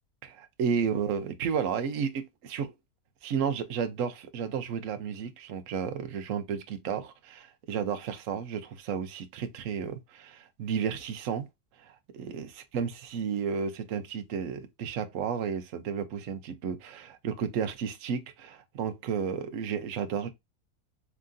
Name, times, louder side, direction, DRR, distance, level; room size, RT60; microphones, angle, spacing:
voice 1, 0.2-2.7 3.2-11.5 11.8-20.3, right 7 dB, 60° right, 1.1 m, -32 dB
4.6 x 3.6 x 2.5 m
omnidirectional pair, 1.7 m